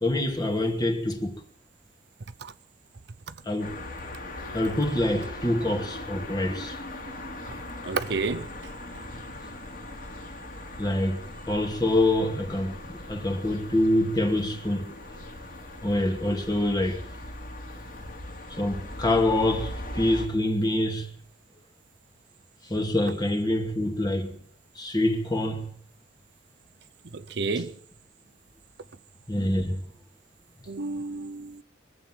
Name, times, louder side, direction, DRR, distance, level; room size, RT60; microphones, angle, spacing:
voice 1, 0.0-1.4 3.4-3.8 4.5-6.8 10.8-14.9 15.8-17.1 18.5-21.1 22.6-24.4 24.8-25.7 29.3-29.8, left 1 dB, 20° left, 2.4 m, -26 dB
sound 1, 3.6-20.3, left 1 dB, 50° left, 2.9 m, -39 dB
voice 2, 7.8-8.5 27.1-27.7 30.7-31.6, right 4 dB, 60° right, 0.7 m, -30 dB
24.0 x 8.1 x 7.5 m
head